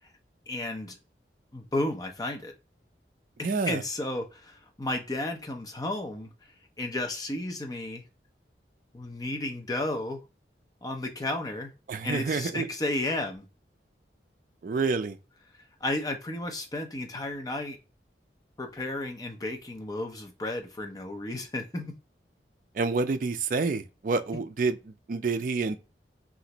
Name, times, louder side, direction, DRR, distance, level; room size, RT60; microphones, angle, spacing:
voice 1, 0.5-1.0 1.5-2.5 3.4-6.3 6.8-8.0 8.9-10.2 10.8-11.7 12.0-13.4 15.8-17.8 18.6-22.0, left 1 dB, 20° left, 0.6 m, -33 dB
voice 2, 3.4-3.8 11.9-12.7 14.6-15.2 22.7-25.8, right 4 dB, 50° right, 0.4 m, -28 dB
3.1 x 2.5 x 2.8 m
head